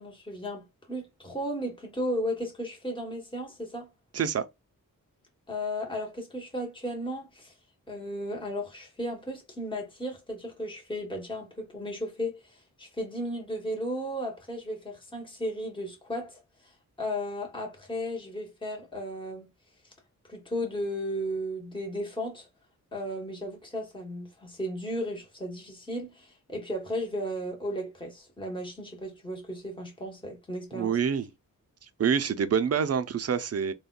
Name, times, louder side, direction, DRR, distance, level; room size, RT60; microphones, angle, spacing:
voice 1, 0.0-3.9 5.5-7.5 7.9-19.5 20.3-22.5 22.9-31.0, equal, 15° left, 1.1 m, -35 dB
voice 2, 4.1-4.5 30.7-31.3 32.0-33.7, right 7 dB, 50° right, 0.5 m, -26 dB
3.6 x 2.2 x 2.2 m
wide cardioid pair, 80°, 34 cm